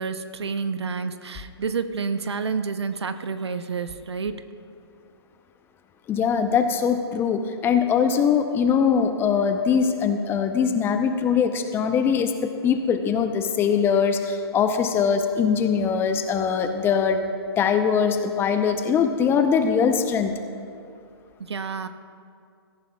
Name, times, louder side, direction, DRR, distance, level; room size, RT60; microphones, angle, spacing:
voice 1, 0.0-4.4 21.4-21.9, right 5 dB, 80° right, 11 dB, 0.8 m, -29 dB
voice 2, 6.1-17.2 17.6-20.3, left 6 dB, 15° left, 7 dB, 0.6 m, -22 dB
17.5 x 14.0 x 2.3 m, 2.4 s
hypercardioid pair, 130°, 14 cm